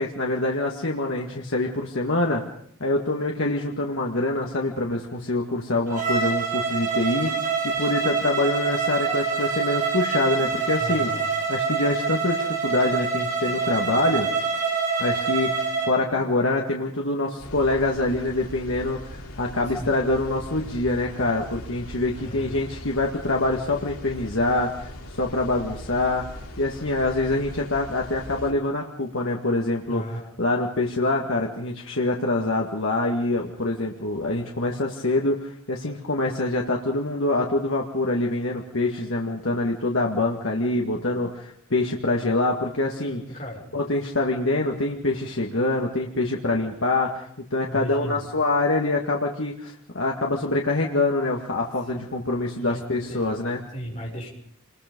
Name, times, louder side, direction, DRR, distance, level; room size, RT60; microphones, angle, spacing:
voice 1, 0.0-2.4 2.8-7.3 7.6-11.1 11.5-14.3 15.0-26.3 26.6-30.0 30.4-43.2 43.7-47.3 47.5-53.6, left 2 dB, 65° left, 0 dB, 2.1 m, -25 dB
Bowed string instrument, 5.9-15.9, right 5 dB, 40° right, 5.6 m, -26 dB
voice 2, 10.8-11.3 19.7-19.9 20.3-20.5 22.1-22.6 29.9-30.3 43.3-43.6 47.6-48.2 52.6-52.8 53.1-53.3 53.7-54.3, equal, 35° left, -2 dB, 6.4 m, -35 dB
sound 1, 17.4-28.5, equal, 85° left, 4.8 m, -40 dB
27.0 x 21.5 x 5.4 m, 0.66 s
head